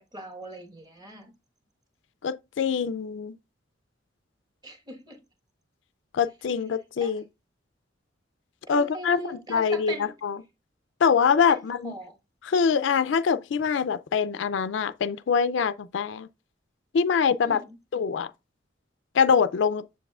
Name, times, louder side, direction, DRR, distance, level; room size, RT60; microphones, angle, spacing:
voice 1, 0.0-1.3 4.6-5.2 7.0-7.2 8.7-10.1 11.5-12.1 17.4-17.8, right 1 dB, 20° right, 1.3 m, -40 dB
voice 2, 2.2-3.4 6.1-7.2 8.7-10.4 11.0-11.9 12.4-16.3 16.9-17.6 17.9-18.3 19.1-19.8, left 6 dB, 70° left, 0.4 m, -24 dB
7.3 x 7.0 x 2.3 m
head